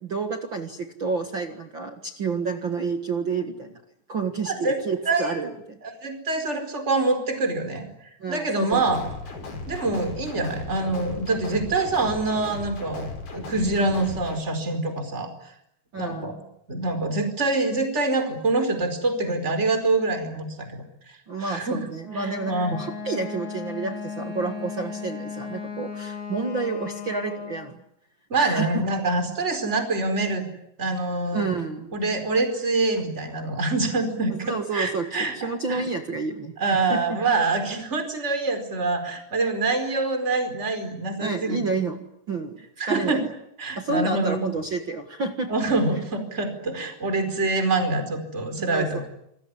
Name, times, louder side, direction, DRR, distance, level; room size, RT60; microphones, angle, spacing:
voice 1, 0.0-3.8 4.1-5.8 8.2-8.8 15.9-16.4 21.3-27.8 28.3-28.8 31.3-32.1 34.3-37.2 41.2-43.2 43.7-45.5 48.6-49.1, right 4 dB, 60° right, 6 dB, 1.3 m, -30 dB
voice 2, 4.5-4.8 5.1-5.3 5.8-7.9 8.3-9.0 9.7-13.1 13.3-15.3 15.9-16.3 16.7-20.8 21.4-21.8 22.1-22.7 28.3-30.4 30.8-31.4 31.9-34.3 34.7-35.3 35.7-35.8 36.6-41.6 42.8-43.2 43.6-44.4 45.5-49.1, right 3 dB, 15° right, 7 dB, 4.6 m, -25 dB
sound 1, 8.7-14.4, left 3 dB, 60° left, 6.8 m, -36 dB
Wind instrument woodwind instrument, 22.0-27.7, left 6 dB, 80° left, 6.1 m, -36 dB
28.5 x 21.0 x 9.9 m, 0.77 s
omnidirectional pair, 4.9 m